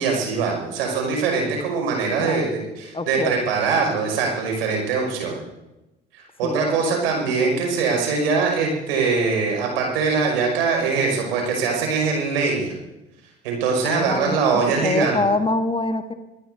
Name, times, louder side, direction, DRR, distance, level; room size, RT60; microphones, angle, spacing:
voice 1, 0.0-5.4 6.1-12.7 13.4-15.3, right 4 dB, 70° right, 1 dB, 5.8 m, -22 dB
voice 2, 2.9-3.4 6.4-6.9 7.4-7.5 13.8-14.4 14.8-16.1, left 2 dB, 15° left, 8 dB, 1.4 m, -25 dB
23.5 x 20.0 x 2.7 m, 0.98 s
figure-of-eight pair, 60°, 30 cm